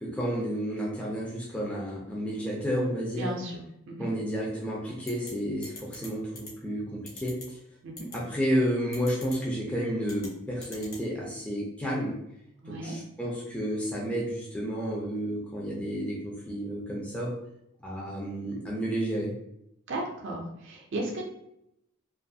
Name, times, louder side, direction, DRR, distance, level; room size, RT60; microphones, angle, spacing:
voice 1, 0.0-3.3 4.0-7.6 8.1-12.2 12.7-17.3 17.8-19.3, equal, 5° left, -5 dB, 0.4 m, -31 dB
voice 2, 3.2-3.6 3.9-4.1 7.8-8.0 12.6-13.0 19.9-21.3, right 1 dB, 55° right, 0 dB, 0.4 m, -34 dB
sound 1, 5.1-5.3 5.6-6.1 6.4-6.5 7.1-7.4 8.0-8.2 8.9-9.4 10.0-10.3 10.6-11.0, left 3 dB, 45° left, 0.8 m, -42 dB
2.5 x 2.3 x 2.6 m, 0.80 s
head